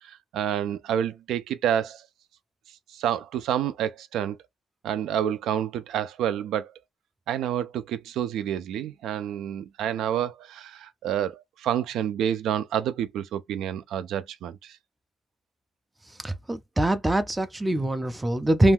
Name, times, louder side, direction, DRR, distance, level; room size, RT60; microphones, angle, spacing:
voice 1, 0.0-2.0 2.9-4.4 4.8-6.7 7.3-14.8, right 10 dB, 80° right, 0.4 m, -28 dB
voice 2, 16.2-18.7, right 1 dB, 10° right, 0.4 m, -23 dB
2.5 x 2.3 x 3.5 m
cardioid pair, 145°, 0 cm